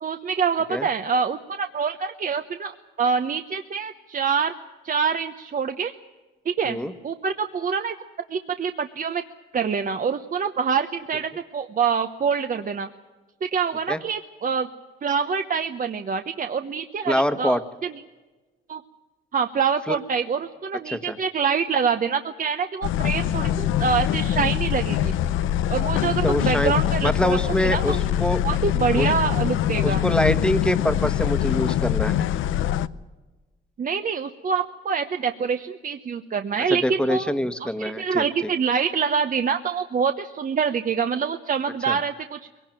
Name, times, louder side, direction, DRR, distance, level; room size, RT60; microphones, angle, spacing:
voice 1, 0.0-4.5 4.8-5.9 6.4-6.8 7.0-7.9 8.3-9.2 9.5-12.9 13.4-14.7 15.0-17.9 18.7-18.8 19.3-25.2 25.7-28.0 28.4-30.0 33.8-37.3 37.6-42.4, right 6 dB, 45° right, 8 dB, 1.0 m, -25 dB
voice 2, 17.1-17.6 19.9-20.0 20.9-21.2 26.2-26.7 27.0-28.4 29.0-29.1 29.8-32.3 36.7-38.2 41.9-42.0, equal, 5° left, 10 dB, 1.4 m, -24 dB
sound 1, 22.8-32.9, left 11 dB, 85° left, 0.7 m, -23 dB
22.0 x 18.0 x 9.1 m, 1.3 s
cardioid pair, 90°, 20 cm